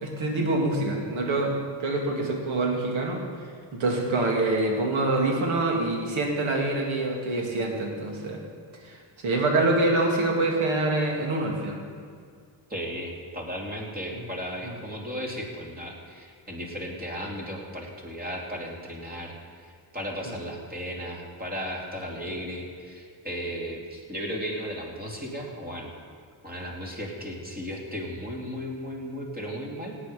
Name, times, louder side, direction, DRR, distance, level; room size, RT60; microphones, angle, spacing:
voice 1, 0.0-3.2 3.7-8.4 8.8-9.0 9.2-11.8 14.1-14.2 14.6-14.8 20.3-20.4, right 2 dB, 75° right, 1 dB, 2.6 m, -26 dB
voice 2, 12.7-25.9 26.4-29.9, equal, 20° right, -1 dB, 2.9 m, -35 dB
17.5 x 8.9 x 5.1 m, 2.1 s
cardioid pair, 95°, 47 cm